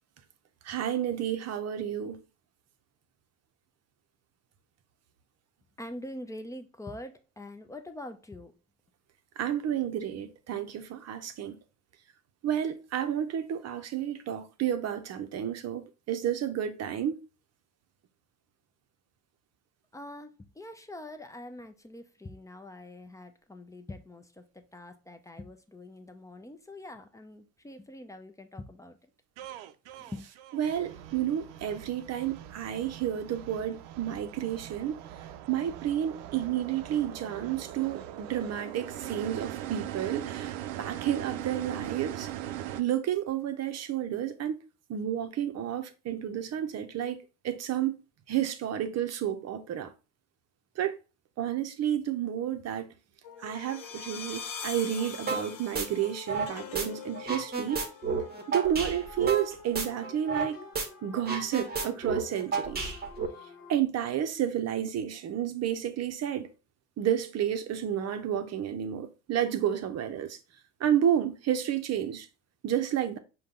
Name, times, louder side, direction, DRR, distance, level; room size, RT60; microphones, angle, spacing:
voice 1, 0.7-2.2 9.4-11.6 12.4-17.2 30.5-35.0 35.5-42.3 42.8-44.6 44.9-47.2 47.4-47.9 48.3-49.9 50.8-51.0 51.4-52.9 53.4-57.8 58.5-60.6 61.0-62.9 63.7-66.5 67.0-70.4 70.8-72.3 72.6-73.2, right 10 dB, 45° right, 0.7 m, -31 dB
voice 2, 5.8-8.5 19.9-29.0 30.0-30.3, left 1 dB, 10° left, 0.5 m, -44 dB
sound 1, 29.4-42.8, right 12 dB, 80° right, 0.5 m, -41 dB
sound 2, 53.2-63.8, left 5 dB, 65° left, 1.0 m, -45 dB
sound 3, 55.3-55.5 55.7-56.9 57.1-60.5 60.7-60.9 61.2-63.3, right 4 dB, 25° right, 1.1 m, -31 dB
5.1 x 2.3 x 3.6 m
supercardioid pair, 90°, 35 cm